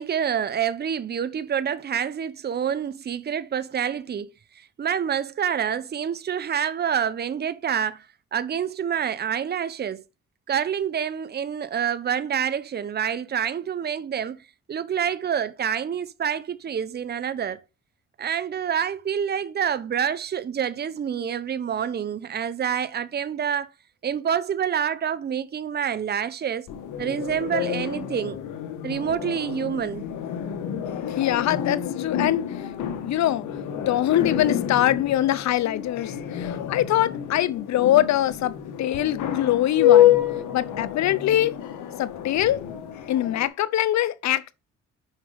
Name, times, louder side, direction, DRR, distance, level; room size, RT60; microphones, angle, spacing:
voice 1, 0.0-4.3 4.8-8.0 8.3-10.0 10.5-14.4 14.7-17.6 18.2-23.7 24.0-26.7 27.0-28.4 28.8-30.0, right 8 dB, 35° right, 0.7 m, -27 dB
sound 1, 26.7-43.5, left 11 dB, 85° left, 1.3 m, -27 dB
voice 2, 31.2-32.5 33.0-33.5 33.8-40.2 40.5-41.5 42.0-42.6 43.1-44.5, left 12 dB, 65° left, 0.7 m, -23 dB
6.4 x 5.0 x 5.0 m
cardioid pair, 90°, 30 cm